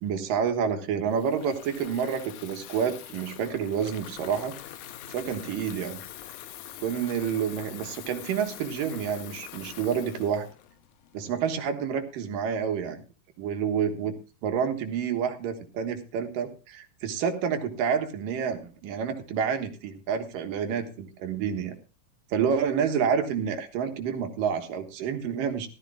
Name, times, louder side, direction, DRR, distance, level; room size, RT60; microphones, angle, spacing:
voice 1, 0.0-4.5 5.1-6.0 6.8-10.5 11.1-13.0 13.4-14.1 14.4-21.7 22.3-25.7, right 7 dB, 80° right, 6 dB, 3.0 m, -29 dB
Water tap faucet / Fill (with liquid), 1.1-11.3, left 12 dB, 75° left, 2.1 m, -44 dB
17.5 x 13.5 x 2.4 m, 0.32 s
omnidirectional pair, 3.9 m